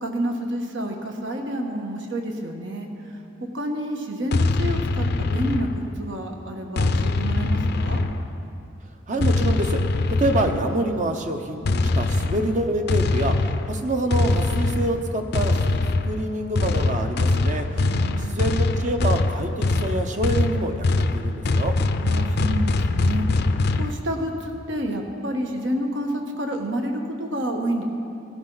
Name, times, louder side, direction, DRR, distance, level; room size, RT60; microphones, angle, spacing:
voice 1, 0.0-8.0 17.7-18.5 22.0-23.5 23.8-27.8, right 1 dB, 70° right, 3 dB, 1.4 m, -29 dB
sound 1, 4.3-6.1 6.8-8.5 9.2-10.8 11.6-23.9, left 2 dB, 55° left, 0.5 m, -23 dB
voice 2, 9.1-9.8 10.2-17.9 18.2-21.8, right 1 dB, 40° right, 5 dB, 0.8 m, -26 dB
17.0 x 12.0 x 4.0 m, 2.7 s
head